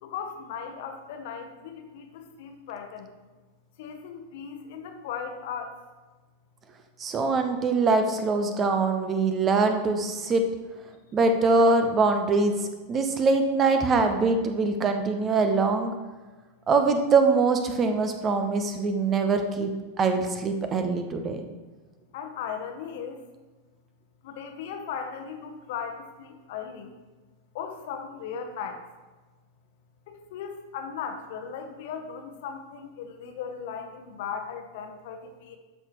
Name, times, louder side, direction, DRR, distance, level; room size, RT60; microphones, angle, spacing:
voice 1, 0.0-3.1 3.8-5.8 22.1-23.2 24.2-26.9 27.5-28.8 30.1-35.6, left 7 dB, 50° left, 6 dB, 1.0 m, -37 dB
voice 2, 7.0-10.4 11.1-12.5 12.9-15.9 16.7-19.7 20.0-21.4, right 3 dB, 25° right, 6 dB, 0.8 m, -23 dB
12.5 x 5.9 x 3.1 m, 1.3 s
figure-of-eight pair, 90°, 0 cm